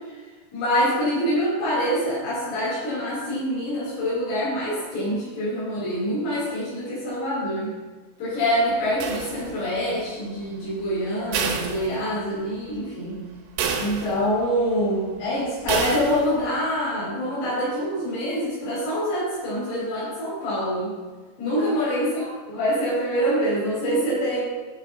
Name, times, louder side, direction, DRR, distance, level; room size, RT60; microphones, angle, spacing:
voice 1, 0.5-7.7 8.2-13.2 13.8-20.9 21.4-22.2 22.5-24.4, equal, 85° left, -10 dB, 6.2 m, -25 dB
sound 1, 9.0-9.8 11.3-12.5 12.9-13.0 13.6-14.5 15.7-16.5, right 6 dB, 85° right, 3.7 m, -29 dB
11.0 x 7.8 x 4.1 m, 1.4 s
omnidirectional pair, 5.7 m